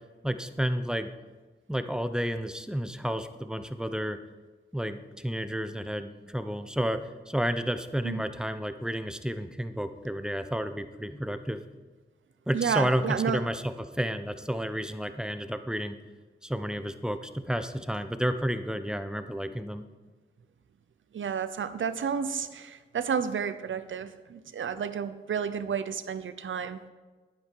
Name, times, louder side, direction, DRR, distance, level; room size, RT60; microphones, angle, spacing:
voice 1, 0.2-1.1 1.7-4.2 4.7-11.6 12.5-16.0 16.4-19.8, equal, 5° right, 10 dB, 0.8 m, -31 dB
voice 2, 12.5-13.4 21.1-26.8, right 7 dB, 80° right, 12 dB, 0.7 m, -31 dB
10.5 x 9.4 x 4.6 m, 1.3 s
cardioid pair, 60°, 20 cm